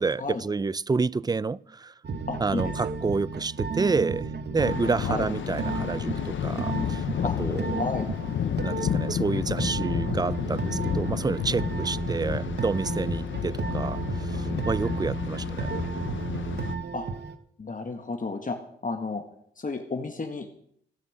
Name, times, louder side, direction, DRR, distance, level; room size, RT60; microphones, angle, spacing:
voice 1, 0.0-1.9 2.4-7.0 7.4-7.9 8.6-15.7, right 4 dB, 20° right, 0.4 m, -29 dB
sound 1, 2.0-17.4, right 5 dB, 60° right, 1.1 m, -33 dB
voice 2, 2.3-2.7 5.1-5.3 7.2-7.4 7.7-8.1 16.9-17.1 17.6-19.2 19.6-20.6, left 3 dB, 40° left, 1.7 m, -32 dB
Thunder, 4.6-16.7, left 9 dB, 75° left, 0.8 m, -31 dB
16.5 x 6.0 x 7.5 m
cardioid pair, 50°, 20 cm